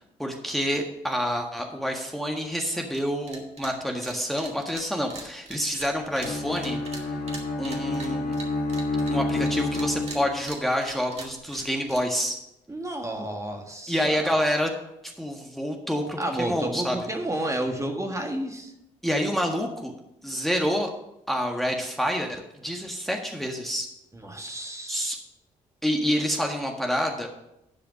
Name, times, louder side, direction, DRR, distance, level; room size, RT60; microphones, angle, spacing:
voice 1, 0.2-7.1 7.6-8.4 9.1-12.4 13.9-14.7 15.2-17.0 19.0-19.9 20.2-20.9 21.3-23.9 24.9-25.2 25.8-27.3, equal, ahead, 2 dB, 1.6 m, -28 dB
sound 1, 2.9-3.0 3.3-3.7 4.0-9.5 9.7-12.3, right 3 dB, 45° right, 2.3 m, -41 dB
Bowed string instrument, 6.2-10.6, left 2 dB, 80° left, 1.6 m, -29 dB
voice 2, 12.7-14.3 16.2-18.7 24.1-25.1, right 1 dB, 20° right, 3 dB, 1.8 m, -31 dB
11.0 x 4.9 x 6.4 m, 0.86 s
supercardioid pair, 50°, 16 cm